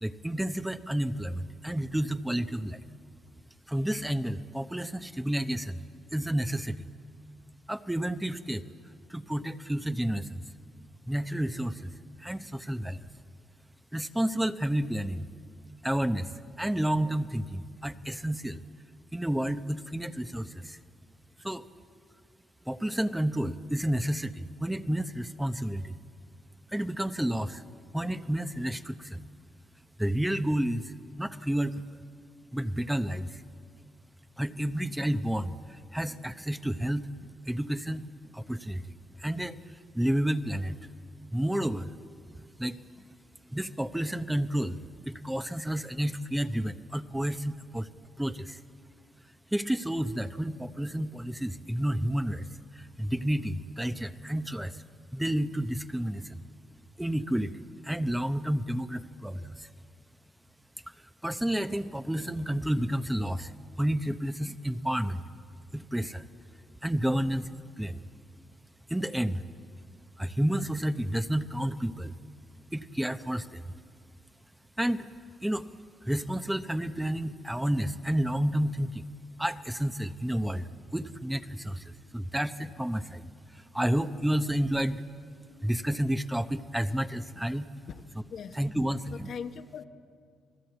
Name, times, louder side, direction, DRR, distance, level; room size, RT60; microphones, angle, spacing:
voice 1, 0.0-2.8 3.7-5.8 6.1-6.9 7.7-8.6 9.1-10.4 11.1-11.9 12.2-13.1 13.9-15.3 15.8-16.3 16.6-18.6 19.1-20.8 21.4-21.7 22.7-26.0 26.7-27.6 27.9-29.2 30.0-31.8 32.5-33.4 34.4-37.1 37.5-38.0 38.3-38.8 39.2-39.6 39.9-40.8 41.3-41.9 42.6-42.8 43.5-47.9 48.2-48.6 49.5-54.8 55.1-56.4 57.0-59.7 61.2-63.5 63.8-65.2 65.7-66.3 66.8-67.5 67.8-68.0 68.9-69.4 70.2-72.1 72.7-73.6 74.8-75.1 75.4-75.7 76.0-79.1 79.4-85.0 85.6-87.7 88.5-89.3, right 1 dB, 5° right, 9 dB, 0.8 m, -30 dB
voice 2, 87.9-88.6 89.1-89.8, left 7 dB, 60° left, 7 dB, 1.2 m, -41 dB
29.0 x 20.0 x 8.1 m, 2.2 s
cardioid pair, 90°, 0 cm